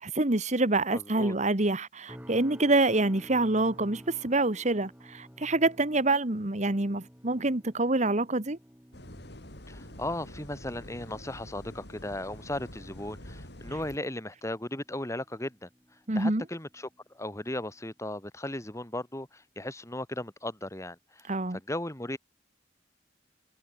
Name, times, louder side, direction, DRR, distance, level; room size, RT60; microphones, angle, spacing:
voice 1, 0.0-8.6 16.1-16.4 21.3-21.6, right 2 dB, 40° right, 1.6 m, -26 dB
voice 2, 0.9-1.3 9.7-15.7 16.1-16.9 17.1-21.2 21.5-22.2, left 1 dB, 15° left, 2.9 m, -36 dB
sound 1, 2.1-17.3 17.6-18.0 18.5-18.7, equal, 10° right, 5.9 m, -54 dB
sound 2, 8.9-14.0, left 1 dB, 60° left, 6.2 m, -46 dB
head